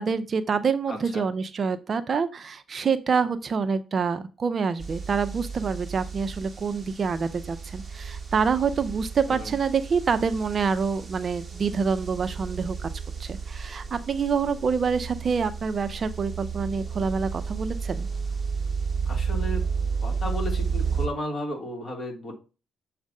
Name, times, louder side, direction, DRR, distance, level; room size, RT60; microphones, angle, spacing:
voice 1, 0.0-12.9 13.2-18.1, right 5 dB, 45° right, 11 dB, 0.5 m, -26 dB
voice 2, 0.9-1.2 9.3-9.5 19.1-19.7 20.0-22.3, left 1 dB, 35° left, 1 dB, 2.1 m, -34 dB
sound 1, 4.8-21.1, right 5 dB, 20° right, 1.1 m, -32 dB
7.2 x 2.5 x 5.3 m, 0.32 s
cardioid pair, 90°, 0 cm